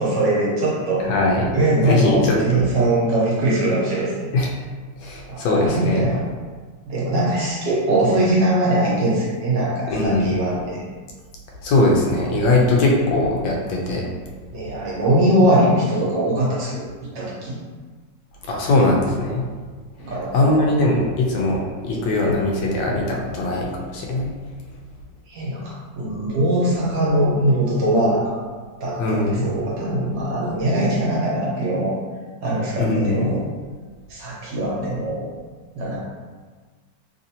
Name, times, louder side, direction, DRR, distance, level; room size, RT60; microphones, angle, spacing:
voice 1, 0.0-1.1 1.5-4.3 5.3-6.2 6.9-10.8 14.5-16.8 17.1-17.6 20.0-20.7 25.3-28.5 28.8-32.0 32.4-33.4 34.1-35.2 35.7-36.0, right 1 dB, 70° right, -6 dB, 1.5 m, -21 dB
voice 2, 1.1-1.5 1.8-2.7 4.3-4.5 5.0-6.1 9.9-10.3 11.6-14.0 18.5-19.4 20.3-21.6 21.8-24.3 29.0-29.5 32.8-33.3, left 2 dB, 80° left, -2 dB, 1.3 m, -20 dB
3.5 x 2.6 x 2.7 m, 1.5 s
omnidirectional pair, 2.0 m